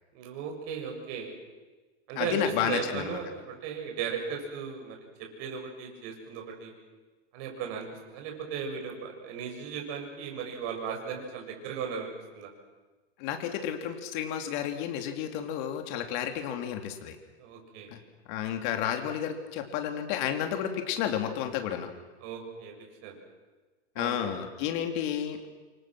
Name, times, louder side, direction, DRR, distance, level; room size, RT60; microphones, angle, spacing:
voice 1, 0.1-1.3 2.1-2.4 2.6-5.0 5.4-6.7 7.3-12.5 17.4-17.9 22.2-22.7 23.0-23.2 24.0-24.2, right 7 dB, 40° right, 2 dB, 7.0 m, -36 dB
voice 2, 2.2-3.2 13.2-17.2 17.9-18.0 18.3-21.9 23.9-25.5, left 9 dB, 45° left, 5 dB, 3.0 m, -31 dB
28.5 x 24.5 x 6.2 m, 1.2 s
hypercardioid pair, 145°, 34 cm